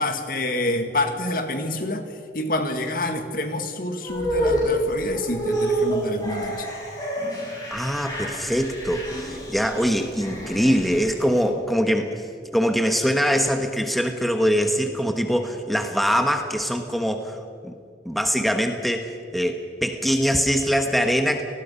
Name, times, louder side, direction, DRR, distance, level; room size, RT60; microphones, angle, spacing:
voice 1, 0.0-6.7, left 1 dB, 50° left, 6 dB, 2.0 m, -27 dB
sound 1, 4.0-11.4, right 1 dB, 20° left, 7.5 m, -28 dB
voice 2, 7.7-12.1 12.5-17.7 18.0-21.4, equal, ahead, 4 dB, 1.2 m, -23 dB
29.5 x 19.0 x 5.6 m, 2.4 s
head